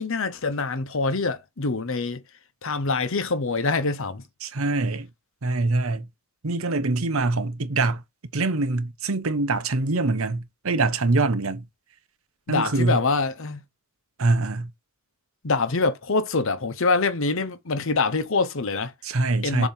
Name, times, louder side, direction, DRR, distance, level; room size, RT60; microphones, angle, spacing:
voice 1, 0.0-2.2 2.6-4.2 12.5-13.6 15.4-18.9 19.4-19.7, left 3 dB, 65° left, 0.9 m, -25 dB
voice 2, 4.4-5.1 5.4-6.1 6.4-8.0 8.3-11.6 12.5-13.0 14.2-14.7 19.0-19.7, right 3 dB, 75° right, 0.9 m, -24 dB
7.2 x 3.0 x 5.6 m
head